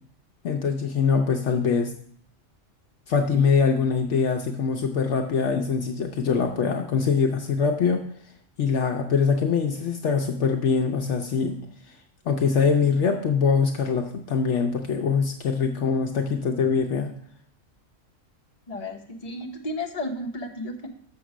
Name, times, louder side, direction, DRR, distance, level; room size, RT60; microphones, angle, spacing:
voice 1, 0.4-1.9 3.1-8.0 8.6-11.6 12.3-17.1, left 5 dB, 65° left, 4 dB, 1.0 m, -23 dB
voice 2, 18.7-20.9, left 1 dB, 30° left, 1 dB, 1.1 m, -33 dB
6.9 x 5.8 x 6.2 m, 0.62 s
omnidirectional pair, 1.3 m